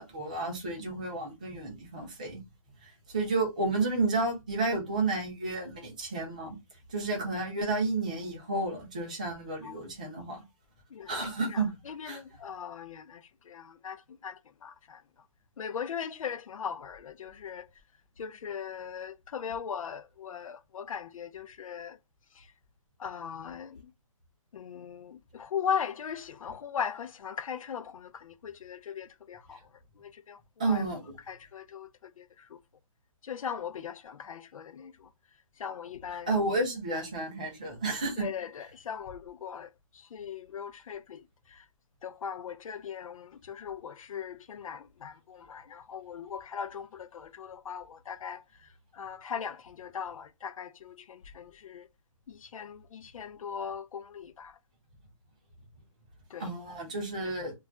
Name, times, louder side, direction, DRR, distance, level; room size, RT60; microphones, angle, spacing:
voice 1, 0.0-2.4 2.8-6.6 6.9-10.4 11.1-11.7 12.0-12.2 30.6-31.0 36.3-38.2 56.4-57.5, right 3 dB, 15° right, 0.4 m, -31 dB
voice 2, 10.9-15.0 15.6-17.7 18.2-22.0 22.3-22.5 23.0-23.9 24.5-29.7 30.0-30.9 31.3-32.6 33.2-35.1 35.6-36.5 38.2-41.7 42.0-51.9 52.3-54.6 56.3-56.5 57.2-57.3, left 7 dB, 70° left, 0.4 m, -39 dB
2.2 x 2.2 x 3.6 m
hypercardioid pair, 180°, 18 cm